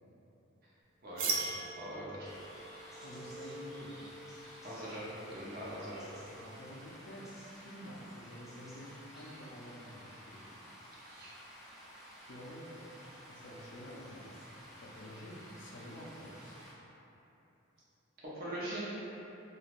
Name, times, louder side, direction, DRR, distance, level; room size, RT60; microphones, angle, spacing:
voice 1, 1.0-2.3 4.6-5.1 5.3-6.1 11.1-11.3 18.2-18.9, right 1 dB, 50° right, -8 dB, 0.7 m, -42 dB
sound 1, 1.2-6.7, right 3 dB, 90° right, 0.4 m, -42 dB
sound 2, 2.2-16.7, equal, ahead, 0.4 m, -53 dB
voice 2, 3.0-4.0 6.4-7.3 7.5-10.6 12.3-12.9 13.3-16.7, equal, 60° left, -3 dB, 0.4 m, -49 dB
3.1 x 2.3 x 2.4 m, 3.0 s
head